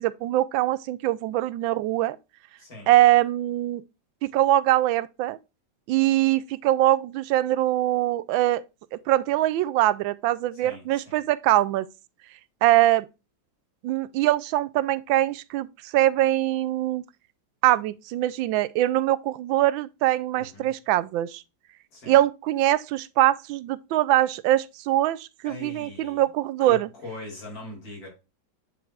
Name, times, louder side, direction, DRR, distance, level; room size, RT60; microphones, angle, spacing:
voice 1, 0.0-2.2 2.9-3.8 4.2-5.4 5.9-8.6 8.9-11.9 12.6-13.1 13.8-15.7 15.9-17.0 17.6-21.4 22.1-26.9, right 14 dB, 85° right, 1.3 m, -23 dB
voice 2, 2.6-2.9 10.5-11.2 20.4-20.7 21.9-22.2 25.4-26.3 26.6-28.1, left 2 dB, 75° left, 3.7 m, -41 dB
9.2 x 4.6 x 2.3 m
omnidirectional pair, 2.1 m